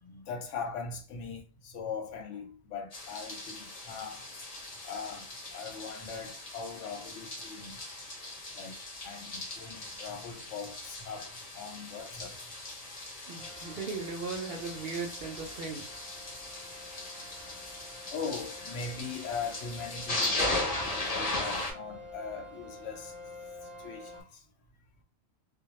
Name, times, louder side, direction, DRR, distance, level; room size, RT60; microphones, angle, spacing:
voice 1, 0.0-4.2 4.8-7.8 8.6-12.4 18.1-23.2 23.6-24.4, left 5 dB, 70° left, 0.9 m, -40 dB
sound 1, 2.9-21.7, left 2 dB, 40° left, 0.6 m, -38 dB
voice 2, 13.2-15.9, right 4 dB, 60° right, 0.6 m, -37 dB
sound 2, 13.4-24.2, left 2 dB, ahead, 0.3 m, -50 dB
2.2 x 2.1 x 2.9 m
omnidirectional pair, 1.3 m